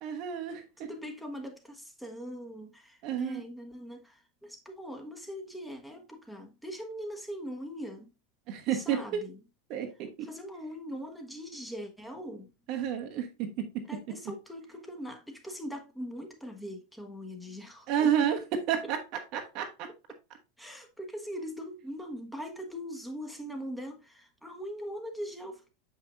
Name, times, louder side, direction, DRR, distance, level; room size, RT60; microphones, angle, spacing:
voice 1, 0.0-0.6 3.0-3.4 8.5-9.2 9.7-10.3 12.7-13.8 17.9-19.0 19.3-19.9, right 8 dB, 50° right, 1.0 m, -30 dB
voice 2, 0.8-8.1 8.7-9.4 10.2-12.5 13.9-18.1 20.6-25.7, equal, 5° left, 1.3 m, -41 dB
6.6 x 5.7 x 2.5 m
figure-of-eight pair, 85°, 0 cm